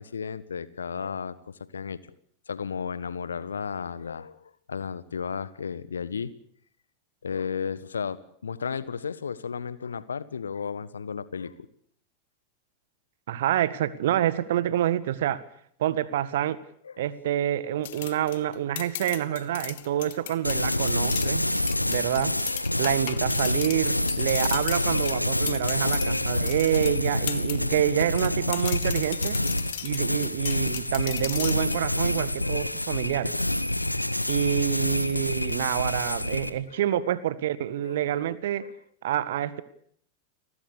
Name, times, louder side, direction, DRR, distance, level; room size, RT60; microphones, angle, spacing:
voice 1, 0.0-2.0 2.5-6.3 7.2-11.5 16.8-17.0 17.6-17.7 18.3-18.4 19.9-20.0 20.6-20.7 22.4-22.6 23.9-24.0 25.7-26.0 26.3-26.5 29.1-29.2 31.9-32.1 32.4-32.6 34.5-34.6 35.2-35.3 36.0-36.3 36.7-36.8 37.8-37.9 38.6-38.7, left 6 dB, 70° left, 1.5 m, -34 dB
voice 2, 13.3-15.4 15.8-16.6 17.0-21.5 21.9-22.3 22.8-29.4 29.8-33.4 34.3-38.6 39.0-39.6, right 12 dB, 55° right, 1.8 m, -27 dB
sound 1, 17.8-27.6 28.0-31.8, left 14 dB, 55° left, 1.9 m, -37 dB
sound 2, 20.4-36.5, left 1 dB, 85° left, 1.4 m, -27 dB
30.0 x 20.5 x 6.7 m
figure-of-eight pair, 90°, 0 cm